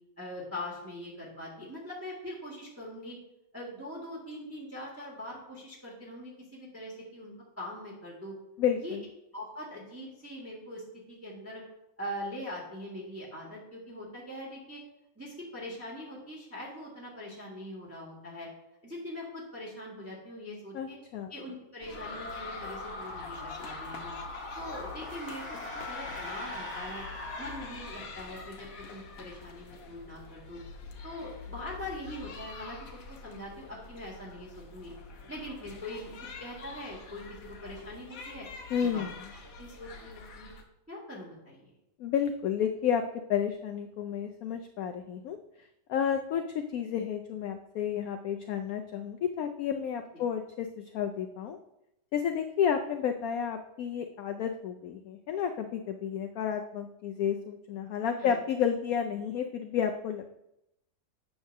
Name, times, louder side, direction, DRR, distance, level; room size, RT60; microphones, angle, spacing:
voice 1, 0.2-3.2 3.5-8.3 8.8-9.0 9.3-11.6 12.0-14.8 15.1-18.5 18.8-21.0 21.3-24.1 24.5-27.0 27.4-30.6 31.0-32.8 33.2-34.9 35.3-38.4 38.8-39.0 39.6-40.5 40.9-41.7 58.2-58.4, left 1 dB, 10° right, -3 dB, 1.5 m, -42 dB
voice 2, 8.6-9.0 20.7-21.3 38.7-39.3 42.0-43.0 43.3-45.4 45.9-51.6 52.1-60.3, left 8 dB, 75° left, 6 dB, 0.8 m, -31 dB
sound 1, 21.8-40.6, left 4 dB, 55° left, 1.2 m, -46 dB
sound 2, 21.9-28.3, left 2 dB, 25° left, 1.5 m, -41 dB
8.7 x 3.5 x 6.5 m, 0.84 s
omnidirectional pair, 2.0 m